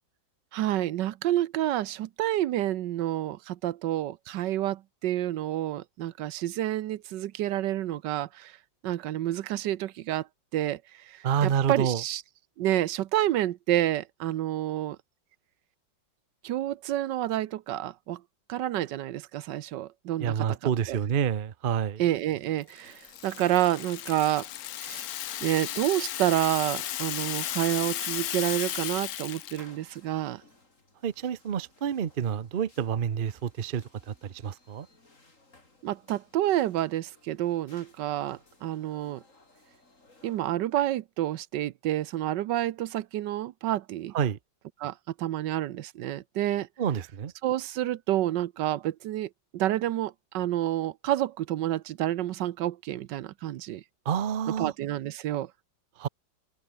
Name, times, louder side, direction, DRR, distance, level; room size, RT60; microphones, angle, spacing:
voice 1, 0.5-8.5 8.8-10.3 10.5-10.8 11.1-12.2 12.6-15.0 16.4-18.2 18.5-21.0 22.0-24.5 24.8-25.1 25.4-30.4 35.8-39.2 40.2-44.1 44.8-46.7 47.4-53.8 54.6-55.5, right 13 dB, 80° right, 1.4 m, -29 dB
voice 2, 11.2-12.0 20.2-22.0 31.0-34.9 44.1-44.4 46.8-47.3 54.1-54.7 56.0-56.1, right 8 dB, 45° right, 0.6 m, -28 dB
Rattle (instrument), 22.7-29.6, left 12 dB, 65° left, 1.1 m, -35 dB
sound 1, 22.8-40.5, left 2 dB, 45° left, 4.8 m, -60 dB
omnidirectional pair, 1.9 m